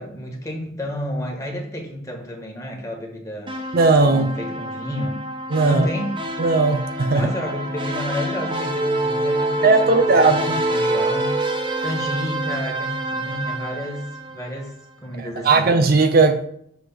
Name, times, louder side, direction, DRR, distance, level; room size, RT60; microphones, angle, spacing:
voice 1, 0.0-3.6 4.0-5.2 5.6-6.2 7.1-11.4 11.8-15.7, equal, 15° left, 1.4 m, -30 dB
sound 1, 3.5-14.7, right 1 dB, 25° right, 0.8 m, -26 dB
voice 2, 3.7-4.3 5.5-5.9 6.4-7.3 9.6-10.6 15.2-16.5, right 3 dB, 50° right, 0.4 m, -17 dB
6.8 x 3.2 x 5.9 m
head